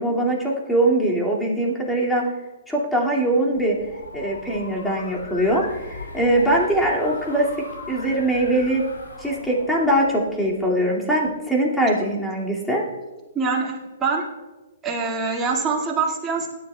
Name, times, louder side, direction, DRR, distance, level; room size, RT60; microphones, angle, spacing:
voice 1, 0.0-2.2 2.7-3.8 4.1-7.5 7.9-8.8 9.2-12.8, right 1 dB, 5° left, -4 dB, 2.3 m, -22 dB
sound 1, 3.5-10.7, left 3 dB, 80° left, 3.9 m, -39 dB
voice 2, 13.3-14.3 14.8-16.5, right 4 dB, 20° right, -2 dB, 2.0 m, -24 dB
17.0 x 10.5 x 2.3 m, 1.1 s
figure-of-eight pair, 125°, 0 cm